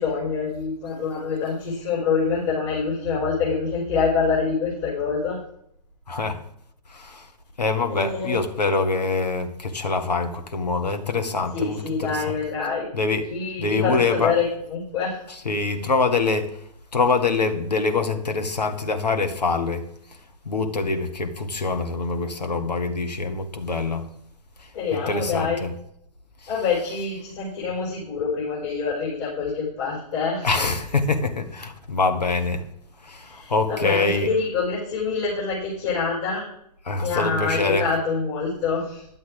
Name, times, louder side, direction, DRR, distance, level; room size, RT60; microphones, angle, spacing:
voice 1, 0.0-5.4 7.9-8.4 11.5-12.9 13.3-15.2 24.7-25.6 26.5-30.5 33.2-36.4 37.0-39.1, left 5 dB, 40° left, 4.9 m, -26 dB
voice 2, 6.1-6.4 6.9-7.3 7.6-12.2 12.9-14.4 15.5-16.6 16.9-20.2 20.5-24.1 24.6-25.7 30.4-32.7 33.0-34.3 36.9-37.9, left 3 dB, 75° left, 1.7 m, -25 dB
11.5 x 7.8 x 5.1 m
figure-of-eight pair, 125°, 21 cm